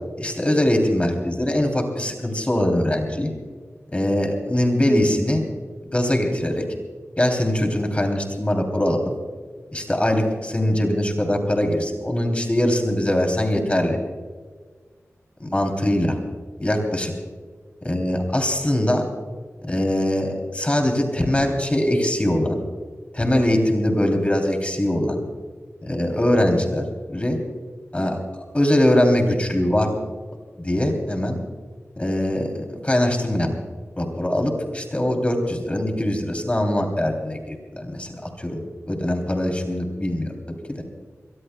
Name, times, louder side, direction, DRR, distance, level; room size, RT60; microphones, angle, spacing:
voice 1, 0.2-3.3 3.9-5.4 5.9-6.6 7.2-9.1 9.7-14.0 15.4-16.2 16.6-17.1 17.8-19.0 19.6-22.6 23.1-25.2 25.8-27.4 27.9-28.2 28.5-29.9 30.6-31.4 32.0-33.5 34.0-38.6 38.9-40.8, left 1 dB, 25° left, 3 dB, 2.9 m, -22 dB
23.5 x 22.0 x 2.2 m, 1.5 s
wide cardioid pair, 75°, 5 cm